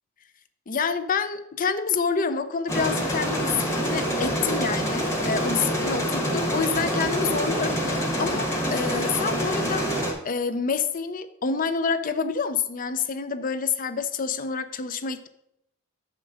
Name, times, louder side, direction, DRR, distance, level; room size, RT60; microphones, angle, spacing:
voice 1, 0.7-9.8 10.2-15.3, left 5 dB, 40° left, 11 dB, 0.5 m, -27 dB
sound 1, 2.7-10.1, equal, 15° left, 1.3 m, -26 dB
6.8 x 5.2 x 5.0 m, 0.80 s
head